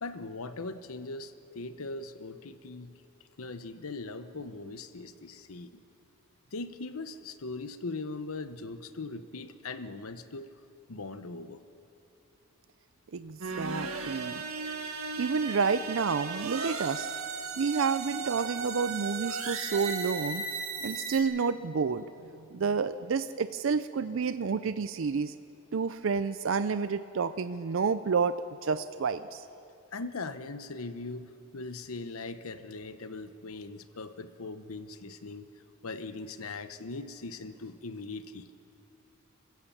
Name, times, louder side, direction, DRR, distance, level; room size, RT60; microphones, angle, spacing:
voice 1, 0.0-3.0 3.4-5.8 6.5-10.5 10.9-11.6 29.9-35.5 35.8-38.5, left 3 dB, 90° left, 11 dB, 0.9 m, -40 dB
voice 2, 13.1-14.4 15.2-17.1 17.6-20.4 20.8-22.1 22.5-25.3 25.7-28.3 28.6-29.4, right 5 dB, 65° right, 12 dB, 0.5 m, -29 dB
sound 1, 13.4-21.2, right 4 dB, 90° right, 1.9 m, -36 dB
25.0 x 15.5 x 7.2 m, 2.8 s
head